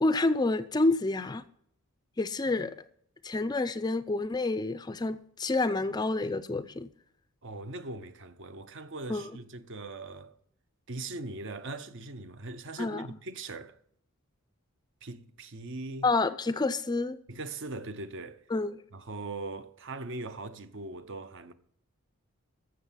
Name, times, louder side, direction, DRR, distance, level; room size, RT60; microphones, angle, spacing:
voice 1, 0.0-1.4 2.2-2.7 3.2-6.9 9.1-9.3 12.8-13.1 16.0-17.2 18.5-18.8, left 2 dB, 20° left, 0.4 m, -28 dB
voice 2, 7.4-10.3 10.9-13.8 15.0-16.1 17.3-18.4 18.9-21.5, right 2 dB, 55° right, 0.8 m, -40 dB
14.0 x 6.7 x 5.7 m
head